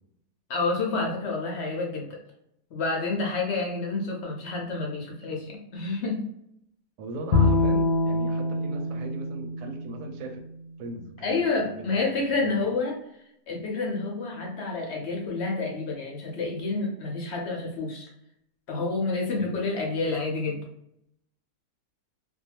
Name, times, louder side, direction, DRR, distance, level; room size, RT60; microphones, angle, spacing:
voice 1, 0.5-2.2 2.7-6.2 11.2-13.0 13.5-18.1 18.7-20.6, left 3 dB, 65° left, 0 dB, 0.6 m, -29 dB
voice 2, 7.0-10.4 10.8-12.6 19.4-19.6, right 2 dB, 85° right, 5 dB, 1.1 m, -39 dB
Bowed string instrument, 7.3-10.6, left 2 dB, 85° left, 1.1 m, -25 dB
2.5 x 2.2 x 2.8 m, 0.77 s
omnidirectional pair, 1.7 m